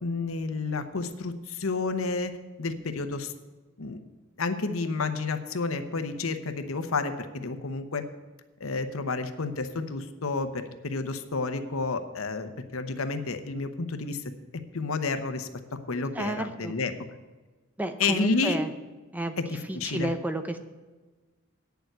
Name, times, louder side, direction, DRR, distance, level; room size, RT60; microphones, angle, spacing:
voice 1, 0.0-3.3 3.8-4.0 4.4-8.0 8.6-14.3 14.7-15.5 15.9-16.9 18.0-18.6 19.4-20.1, left 3 dB, 85° left, 9 dB, 0.9 m, -30 dB
voice 2, 16.2-16.7 17.8-18.7 19.1-20.6, right 1 dB, 10° right, 8 dB, 0.6 m, -31 dB
9.2 x 7.0 x 7.9 m, 1.3 s
head